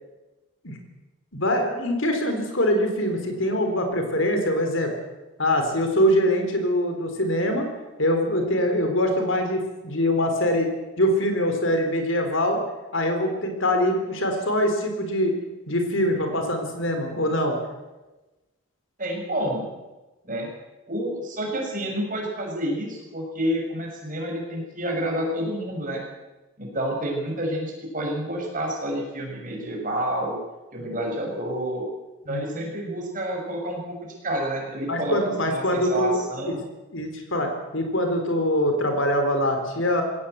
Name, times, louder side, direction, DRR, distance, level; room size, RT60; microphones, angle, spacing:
voice 1, 1.3-4.9 5.4-7.7 8.0-10.7 11.0-12.6 12.9-15.3 15.7-17.5 32.3-32.6 34.9-36.5 36.9-40.0, equal, 55° left, 5 dB, 4.1 m, -23 dB
voice 2, 19.0-19.7 20.2-20.5 20.9-26.0 26.6-30.4 30.7-31.9 32.3-36.6, right 1 dB, 35° right, 0 dB, 6.3 m, -29 dB
20.5 x 17.0 x 8.1 m, 1.1 s
head